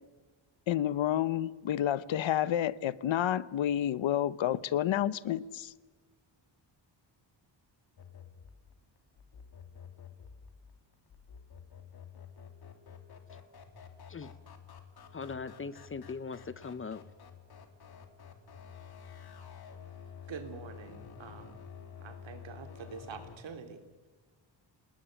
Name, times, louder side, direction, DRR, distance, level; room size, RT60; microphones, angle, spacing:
voice 1, 0.7-5.7, left 11 dB, 80° left, 1.0 m, -30 dB
sound 1, 8.0-23.4, left 7 dB, 55° left, 3.0 m, -50 dB
voice 2, 15.1-17.0, left 4 dB, 30° left, 0.8 m, -40 dB
voice 3, 20.3-21.6 22.0-24.1, right 6 dB, 75° right, 3.4 m, -46 dB
28.0 x 19.5 x 9.0 m
wide cardioid pair, 170°, 46 cm